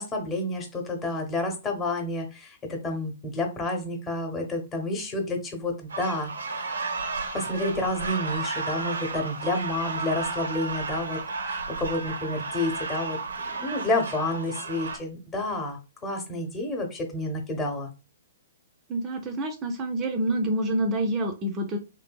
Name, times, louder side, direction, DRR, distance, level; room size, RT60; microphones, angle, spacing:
voice 1, 0.0-6.7 7.3-11.2 11.5-13.2 13.4-17.9, left 2 dB, 20° left, 3 dB, 0.8 m, -30 dB
sound 1, 5.9-15.0, right 4 dB, 80° right, 0.6 m, -33 dB
voice 2, 18.9-21.8, right 1 dB, 25° right, 6 dB, 0.4 m, -27 dB
2.8 x 2.6 x 2.3 m, 0.30 s
hypercardioid pair, 125°, 0 cm